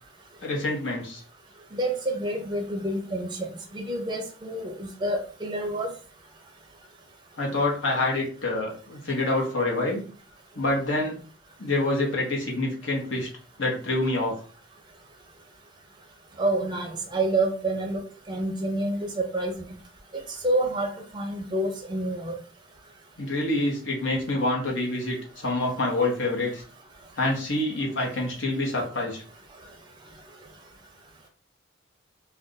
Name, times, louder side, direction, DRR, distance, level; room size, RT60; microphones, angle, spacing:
voice 1, 0.4-1.2 7.4-10.0 10.5-11.2 11.6-13.3 13.6-14.4 23.2-26.6 27.2-29.2, left 2 dB, 70° left, -2 dB, 1.0 m, -26 dB
voice 2, 1.7-3.4 3.7-5.9 16.4-18.0 18.3-19.7 20.4-22.4, right 1 dB, 20° right, 3 dB, 0.5 m, -28 dB
2.5 x 2.3 x 3.7 m, 0.41 s
head